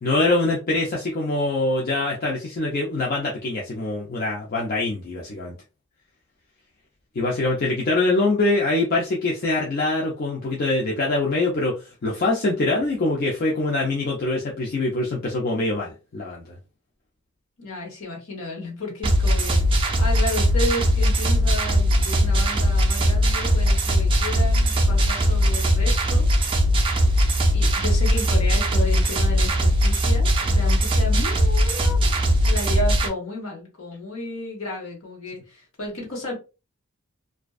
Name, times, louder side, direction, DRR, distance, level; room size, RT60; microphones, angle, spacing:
voice 1, 0.0-5.5 7.1-16.5, left 2 dB, 45° left, -2 dB, 0.4 m, -24 dB
voice 2, 12.6-12.9 17.6-26.6 27.1-36.3, left 1 dB, 65° left, -1 dB, 1.1 m, -33 dB
sound 1, 19.0-33.1, equal, 25° right, 0.3 m, -20 dB
2.4 x 2.2 x 2.3 m, 0.30 s
head